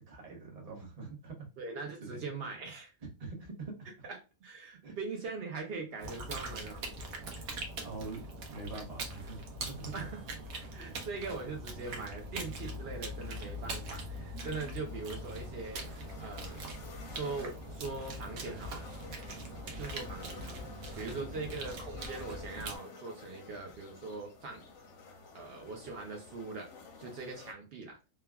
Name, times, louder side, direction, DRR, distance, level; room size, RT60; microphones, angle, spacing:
voice 1, 0.0-1.4 2.0-2.2 3.2-3.9 4.8-4.9 7.8-9.9 10.8-10.9 21.3-21.5, right 3 dB, 35° right, -1 dB, 0.6 m, -44 dB
voice 2, 1.6-2.9 4.4-6.9 9.9-10.2 10.7-15.9 16.2-16.6 17.0-18.8 19.7-20.7 21.0-24.6 25.3-26.7 27.0-28.0, right 3 dB, 90° right, 1 dB, 0.5 m, -41 dB
sound 1, 6.0-22.8, right 1 dB, 70° right, 1.1 m, -42 dB
sound 2, 14.9-27.5, left 4 dB, 65° left, 0.8 m, -52 dB
3.2 x 2.2 x 2.2 m, 0.30 s
omnidirectional pair, 1.7 m